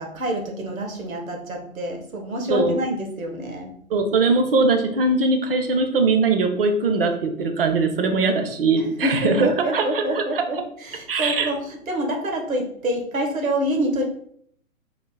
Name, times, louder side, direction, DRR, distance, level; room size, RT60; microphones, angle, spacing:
voice 1, 0.0-3.7 9.0-14.0, equal, 70° right, 3 dB, 1.3 m, -27 dB
voice 2, 3.9-10.4 11.1-11.5, right 3 dB, 40° right, 7 dB, 0.7 m, -21 dB
4.0 x 2.6 x 3.7 m, 0.65 s
figure-of-eight pair, 125°, 42 cm